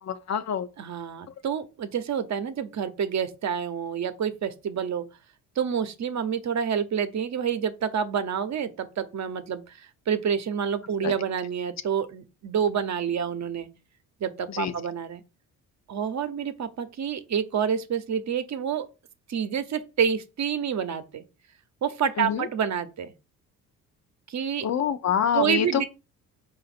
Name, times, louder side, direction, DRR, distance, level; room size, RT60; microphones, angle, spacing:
voice 1, 0.0-0.7 11.0-11.1 14.5-14.7 22.2-22.5 24.6-25.8, left 8 dB, 45° left, 0.7 m, -26 dB
voice 2, 0.8-5.0 5.6-9.6 10.1-13.7 14.2-15.2 15.9-18.9 19.3-21.2 21.8-23.1 24.3-24.7 25.3-25.8, right 7 dB, 50° right, 0.9 m, -28 dB
4.7 x 2.6 x 4.3 m
supercardioid pair, 65°, 37 cm